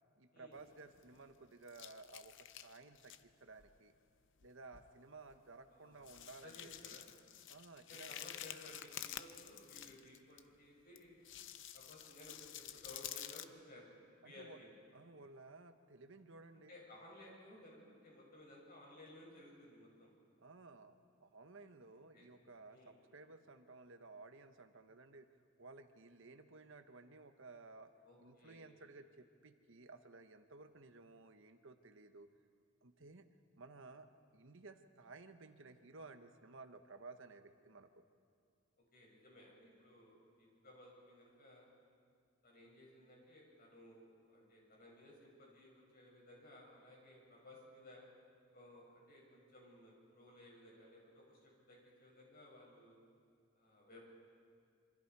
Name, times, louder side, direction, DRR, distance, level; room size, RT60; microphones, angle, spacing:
voice 1, 0.2-3.9 4.4-7.0 7.5-8.1 14.2-14.6 14.9-16.7 20.4-25.3 25.6-27.9 28.2-32.3 32.8-33.3 33.6-34.1 34.3-38.0, right 3 dB, 65° right, 8 dB, 1.1 m, -56 dB
sound 1, 0.6-1.4 1.7-3.2 3.6-3.8 4.4-4.5 4.7-4.9 5.3-5.4 6.0-10.4 11.0-13.5, left 11 dB, 65° left, 0.7 m, -50 dB
voice 2, 5.7-7.1 7.8-11.3 11.7-14.7 16.7-20.1 22.1-22.3 22.7-22.9 28.0-28.7 38.9-41.7 42.4-48.1 48.5-51.4 51.7-53.0 53.6-54.0, left 1 dB, 50° left, -2 dB, 7.1 m, -58 dB
27.0 x 25.0 x 4.8 m, 2.2 s
head